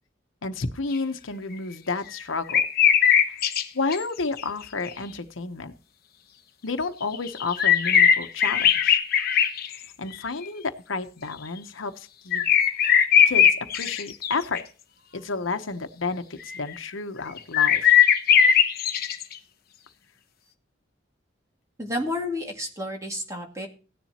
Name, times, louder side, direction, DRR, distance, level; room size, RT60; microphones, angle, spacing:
voice 1, 0.4-2.6 3.3-3.4 3.7-5.7 6.6-9.0 9.7-12.5 12.8-13.0 13.3-14.6 15.1-17.9, left 3 dB, 85° left, 8 dB, 1.0 m, -31 dB
sound 1, 0.9-1.0 2.5-3.6 3.9-4.0 4.4-4.5 4.9-5.0 7.1-9.8 10.1-10.2 12.3-14.6 16.4-16.6 17.4-19.3, left 8 dB, 50° left, 1.0 m, -19 dB
voice 2, 21.8-23.7, left 1 dB, 15° right, 1 dB, 2.1 m, -31 dB
16.0 x 10.5 x 2.9 m, 0.36 s
head